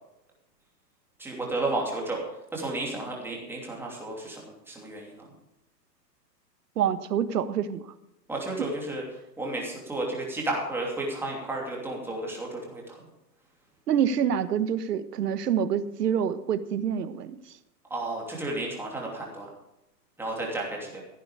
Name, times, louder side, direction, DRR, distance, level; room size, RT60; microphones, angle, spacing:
voice 1, 1.2-2.2 2.5-5.3 8.3-9.0 9.4-13.0 17.9-19.5 20.2-21.0, right 2 dB, 5° right, -2 dB, 2.8 m, -32 dB
voice 2, 6.8-7.8 13.9-17.4, right 8 dB, 65° right, 12 dB, 1.5 m, -26 dB
16.0 x 9.0 x 5.0 m, 0.89 s
hypercardioid pair, 155°, 50 cm